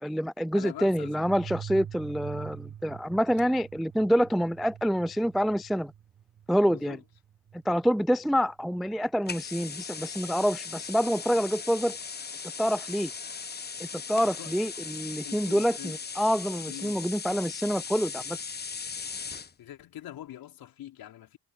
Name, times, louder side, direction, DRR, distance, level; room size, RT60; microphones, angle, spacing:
voice 1, 0.0-5.9 6.5-7.0 7.5-12.0 12.6-13.1 13.8-18.4, equal, ahead, 0.4 m, -27 dB
voice 2, 0.5-1.4 6.6-7.0 14.4-14.6 15.2-16.0 16.7-17.1 19.6-21.4, left 12 dB, 55° left, 4.2 m, -44 dB
sound 1, 0.7-9.1, right 9 dB, 35° right, 1.6 m, -45 dB
sound 2, 9.3-19.5, left 5 dB, 25° left, 1.3 m, -38 dB
figure-of-eight pair, 50°, 43 cm